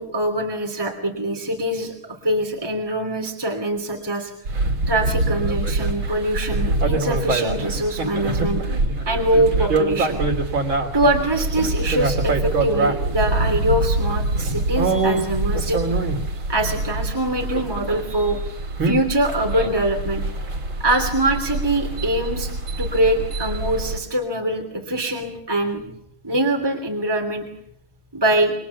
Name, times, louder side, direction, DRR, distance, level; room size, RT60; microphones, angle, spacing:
voice 1, 0.0-1.9 2.2-4.3 4.9-8.6 9.1-10.2 10.9-15.8 16.5-18.4 18.8-20.2 20.8-22.5 22.8-25.8 26.2-27.4 28.1-28.5, right 1 dB, 10° right, 3 dB, 3.0 m, -23 dB
sound 1, 4.5-24.0, right 2 dB, 70° right, 3.7 m, -24 dB
28.0 x 25.0 x 7.1 m, 0.78 s
omnidirectional pair, 2.3 m